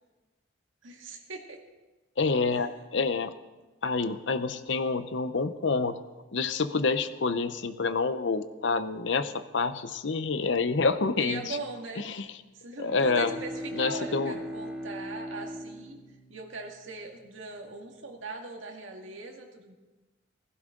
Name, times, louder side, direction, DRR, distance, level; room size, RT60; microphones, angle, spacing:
voice 1, 0.8-1.6 2.5-2.7 11.2-12.0 12.5-16.0 16.3-19.7, right 3 dB, 80° right, 2 dB, 2.0 m, -40 dB
voice 2, 2.2-3.3 3.8-6.0 6.3-11.6 12.0-12.3 12.8-13.3 13.7-14.3, left 4 dB, 65° left, 11 dB, 0.7 m, -28 dB
Bowed string instrument, 12.7-17.4, equal, 5° right, 2.6 m, -39 dB
16.5 x 15.5 x 3.8 m, 1.1 s
head